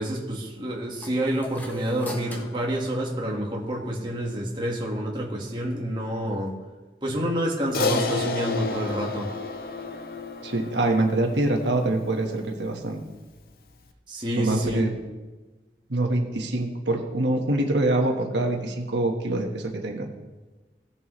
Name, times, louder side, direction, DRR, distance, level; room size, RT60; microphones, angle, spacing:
voice 1, 0.0-6.6 7.0-9.3 14.1-14.8, right 1 dB, 25° right, -2 dB, 1.6 m, -28 dB
sound 1, 1.0-3.7, equal, 10° left, 1.0 m, -42 dB
Crash cymbal, 7.7-12.3, left 3 dB, 55° left, 0.6 m, -30 dB
voice 2, 10.4-13.0 14.4-14.9 15.9-20.1, right 2 dB, 90° right, 2 dB, 1.4 m, -25 dB
17.0 x 7.0 x 3.2 m, 1.2 s
head